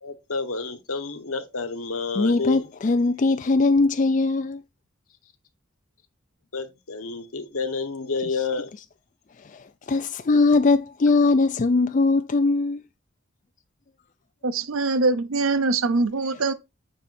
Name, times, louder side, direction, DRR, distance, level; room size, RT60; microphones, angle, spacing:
voice 1, 0.0-2.6 6.5-8.7, left 4 dB, 85° left, 1.2 m, -29 dB
voice 2, 2.2-4.6 9.5-12.8, left 3 dB, 35° left, 0.4 m, -21 dB
voice 3, 14.4-16.5, right 3 dB, 75° right, 0.6 m, -23 dB
9.4 x 4.8 x 2.6 m
head